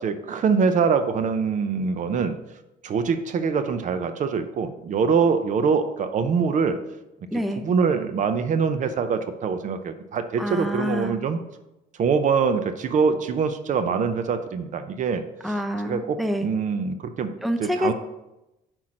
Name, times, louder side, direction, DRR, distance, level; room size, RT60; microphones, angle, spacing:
voice 1, 0.0-2.4 2.8-6.8 7.6-11.4 12.0-15.2 15.8-17.3 17.6-17.9, right 5 dB, 50° right, 10 dB, 0.6 m, -24 dB
voice 2, 7.3-7.6 10.4-11.2 15.4-16.5 17.4-17.9, equal, ahead, 7 dB, 0.6 m, -27 dB
5.8 x 4.5 x 6.3 m, 0.96 s
cardioid pair, 110°, 17 cm